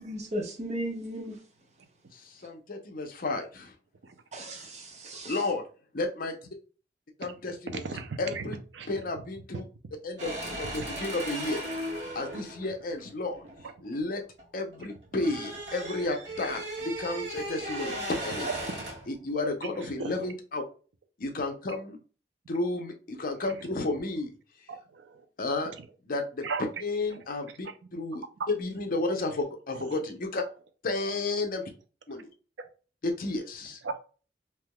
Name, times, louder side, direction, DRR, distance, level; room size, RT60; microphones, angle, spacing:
voice 1, 0.0-1.4 4.3-5.3, equal, 40° right, 0.9 m, -36 dB
voice 2, 2.1-3.7 5.3-5.6 5.9-6.3 7.2-7.8 8.2-8.6 8.9-9.6 10.0-11.6 11.9-13.4 13.8-14.2 14.5-18.5 19.1-20.6 21.2-22.0 22.5-24.3 25.4-25.7 26.1-26.4 26.8-28.2 28.6-30.4 30.8-31.7 32.1-32.3 33.2-33.8, left 2 dB, 50° left, 0.7 m, -32 dB
voice 3, 7.7-9.0 9.5-9.7 10.7-10.9 13.6-13.7 18.4-18.7 19.7-20.3 23.4-23.6 24.7-25.3 25.6-25.8 26.4-26.6 27.1-27.2 27.6-27.7 28.4-28.5 29.7-30.0 32.1-32.2 32.6-32.7 33.8-33.9, right 4 dB, 90° right, 0.5 m, -37 dB
sound 1, 10.2-14.4 14.7-19.1, right 1 dB, 75° right, 1.4 m, -37 dB
3.4 x 2.9 x 2.2 m
head